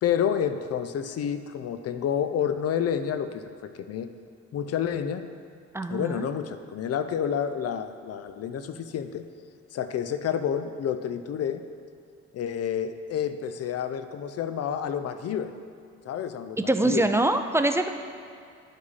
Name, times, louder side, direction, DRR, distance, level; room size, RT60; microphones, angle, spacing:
voice 1, 0.0-4.1 4.5-5.3 5.9-9.3 9.7-11.6 12.3-15.5 16.1-17.1, left 8 dB, 55° left, 10 dB, 0.5 m, -29 dB
voice 2, 5.7-6.3 16.6-17.9, right 2 dB, 10° right, 7 dB, 0.4 m, -24 dB
11.5 x 4.8 x 4.1 m, 2.4 s
cardioid pair, 90°, 30 cm